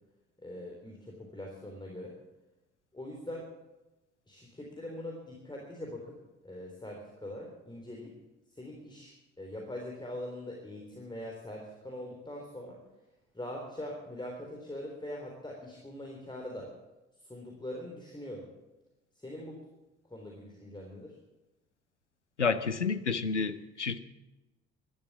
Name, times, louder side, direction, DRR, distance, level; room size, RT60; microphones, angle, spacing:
voice 1, 0.4-2.2 2.9-3.5 4.3-6.2 6.4-8.2 8.5-12.8 13.3-16.7 17.2-18.5 19.2-19.6 20.1-21.2, left 1 dB, 15° left, 0 dB, 3.7 m, -42 dB
voice 2, 22.4-24.0, left 5 dB, 90° left, 13 dB, 0.6 m, -30 dB
15.5 x 12.5 x 7.4 m, 1.0 s
figure-of-eight pair, 45°, 34 cm